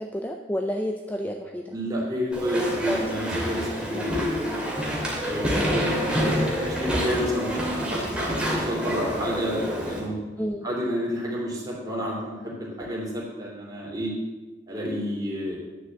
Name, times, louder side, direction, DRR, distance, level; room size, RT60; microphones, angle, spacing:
voice 1, 0.0-1.7 2.5-3.1 3.4-3.5 3.9-4.4 5.6-5.9 10.4-10.7, equal, 10° left, 3 dB, 0.5 m, -31 dB
voice 2, 1.7-4.4 5.2-6.3 6.6-10.1 10.6-14.1 14.7-15.6, equal, 20° right, -4 dB, 3.2 m, -30 dB
Walk footsteps / Chatter / Squeak, 2.3-10.0, equal, 5° right, 2.6 m, -27 dB
10.0 x 6.0 x 7.6 m, 1.2 s
head